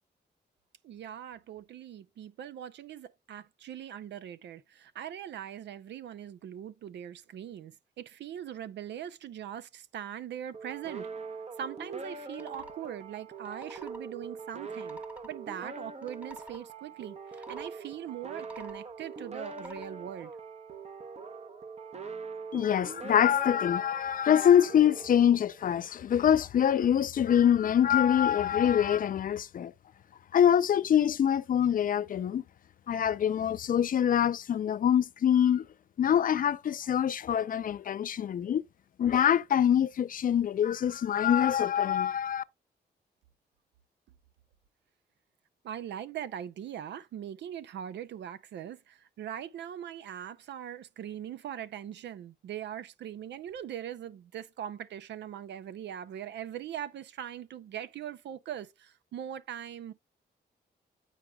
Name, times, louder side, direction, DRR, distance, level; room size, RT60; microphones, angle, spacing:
voice 1, 0.8-11.1 11.6-20.3 45.6-59.9, right 10 dB, 90° right, 0.5 m, -41 dB
sound 1, 10.5-25.9, right 4 dB, 40° right, 0.8 m, -43 dB
sound 2, 12.2-12.8 13.4-14.0 14.7-15.3 16.0-16.6 17.3-17.7 18.3-18.9 19.4-19.9, left 1 dB, 10° right, 1.0 m, -49 dB
voice 2, 22.5-29.7 30.3-32.4 32.9-35.7 36.0-38.6 39.0-42.4, left 9 dB, 55° left, 0.4 m, -25 dB
9.1 x 4.9 x 2.2 m
cardioid pair, 105°, 18 cm